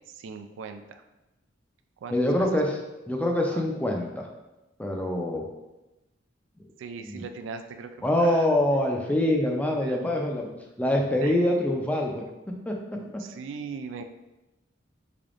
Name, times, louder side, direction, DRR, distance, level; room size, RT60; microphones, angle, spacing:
voice 1, 0.1-1.0 2.0-2.5 2.8-3.1 3.5-3.6 6.8-8.5 9.8-10.0 11.2-11.4 13.0-14.0, right 5 dB, 90° right, 7 dB, 0.3 m, -40 dB
voice 2, 2.1-2.7 3.1-4.3 4.8-5.5 7.0-7.3 8.0-10.5 10.8-12.8 13.1-13.2, left 1 dB, 10° left, 1 dB, 0.4 m, -25 dB
3.7 x 3.4 x 2.5 m, 1.0 s
head